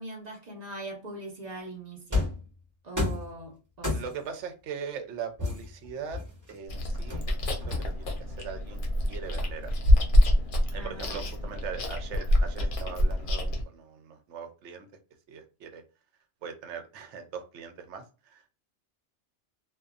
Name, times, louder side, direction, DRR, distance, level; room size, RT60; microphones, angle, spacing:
voice 1, 0.0-2.3 2.8-4.0 10.7-11.5, right 2 dB, 40° right, 0.9 m, -42 dB
sound 1, 2.1-2.5 3.0-3.3 3.8-4.3 5.4-6.5 7.1-8.1, left 2 dB, 15° right, 1.0 m, -31 dB
voice 2, 3.9-6.2 6.5-8.8 9.1-9.7 10.7-14.9 15.3-15.8 16.4-18.5, right 6 dB, 80° right, 0.9 m, -40 dB
Chewing mastication, 6.7-13.6, left 1 dB, 55° left, 0.7 m, -26 dB
2.6 x 2.2 x 2.3 m
omnidirectional pair, 1.2 m